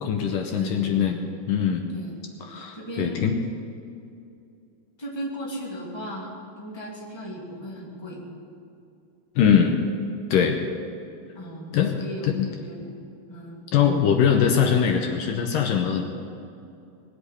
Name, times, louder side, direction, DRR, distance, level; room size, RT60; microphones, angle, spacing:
voice 1, 0.0-1.2 1.5-1.8 2.4-3.4 9.4-9.9 10.3-10.6 11.7-12.0 12.2-12.5 13.7-16.0, left 8 dB, 70° left, 4 dB, 2.3 m, -22 dB
voice 2, 0.5-1.0 1.9-2.2 2.7-3.2 5.0-6.3 6.6-8.2 11.3-13.0 13.3-13.7, right 1 dB, 10° left, -3 dB, 2.0 m, -36 dB
20.0 x 8.1 x 8.4 m, 2.6 s
omnidirectional pair, 4.5 m